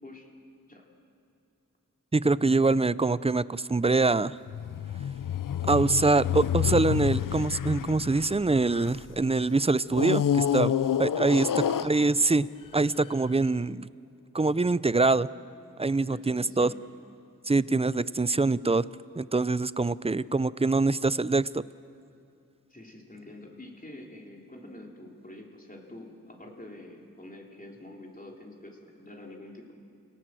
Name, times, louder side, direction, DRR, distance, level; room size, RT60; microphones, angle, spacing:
voice 1, 2.1-4.4 5.7-10.7 11.0-11.5 11.8-12.5 12.7-13.9 14.3-15.3 15.8-16.7 17.5-18.9 19.2-21.6, right 3 dB, 20° right, 18 dB, 0.5 m, -24 dB
sound 1, 4.5-9.2 9.9-12.4 13.1-13.2, left 9 dB, 75° left, 0.5 m, -28 dB
voice 2, 11.4-12.2 16.0-16.8 22.7-29.7, left 1 dB, 25° left, -1 dB, 3.6 m, -47 dB
29.5 x 18.0 x 7.7 m, 2.5 s
wide cardioid pair, 65°, 33 cm